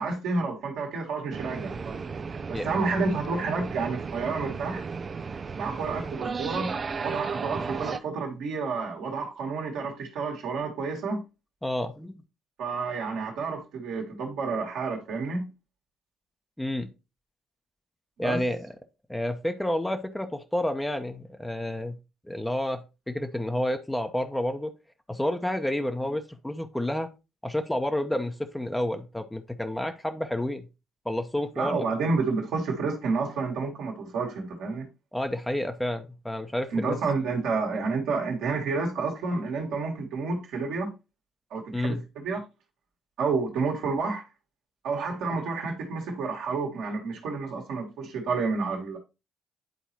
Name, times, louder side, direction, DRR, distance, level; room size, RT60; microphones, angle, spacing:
voice 1, 0.0-2.0 2.5-4.8 5.6-11.2 12.6-15.5 18.2-18.4 31.6-34.9 36.7-40.9 41.5-42.4 43.2-44.2 44.8-49.0, right 4 dB, 70° right, 1.8 m, -30 dB
sound 1, 1.3-8.0, right 5 dB, 40° right, 0.5 m, -34 dB
voice 2, 11.6-12.1 16.6-16.9 18.2-18.7 19.1-22.0 22.3-24.7 25.1-27.1 27.4-30.7 31.1-31.8 35.1-37.0 41.7-42.0, left 1 dB, 10° left, 0.9 m, -30 dB
10.5 x 4.0 x 2.9 m
hypercardioid pair, 45°, 0 cm